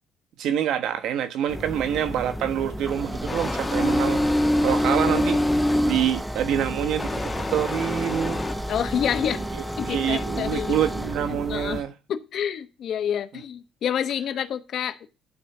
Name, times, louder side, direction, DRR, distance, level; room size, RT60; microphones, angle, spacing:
voice 1, 0.4-4.2 4.6-5.4 5.8-8.4 9.5-11.9, right 10 dB, 75° right, 1.1 m, -26 dB
sound 1, 1.5-11.8, equal, 5° right, 0.6 m, -27 dB
sound 2, 3.3-6.1 7.0-8.5, left 3 dB, 20° left, 1.3 m, -31 dB
voice 2, 8.7-9.4 9.8-10.8 11.5-11.8 12.1-15.1, left 9 dB, 55° left, 1.0 m, -28 dB
11.5 x 4.1 x 7.0 m
cardioid pair, 130°, 0 cm